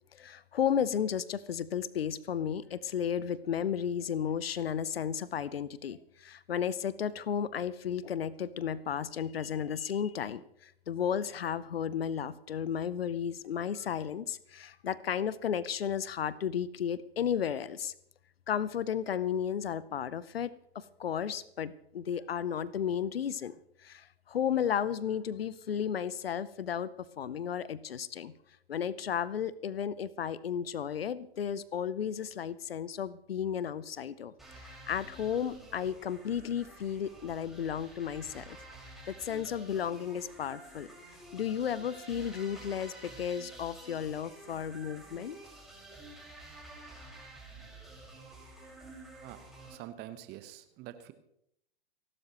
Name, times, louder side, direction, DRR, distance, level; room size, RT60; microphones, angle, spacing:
voice 1, 0.1-17.9 18.5-23.6 23.8-28.3 28.7-34.3 34.9-38.6 39.1-40.9 41.3-45.4, left 8 dB, 75° left, 19 dB, 0.8 m, -33 dB
sound 1, 34.4-49.8, right 2 dB, ahead, 5.4 m, -50 dB
voice 2, 49.7-51.1, right 13 dB, 35° right, 11 dB, 1.2 m, -46 dB
29.5 x 12.0 x 3.1 m, 0.75 s
figure-of-eight pair, 100°, 30 cm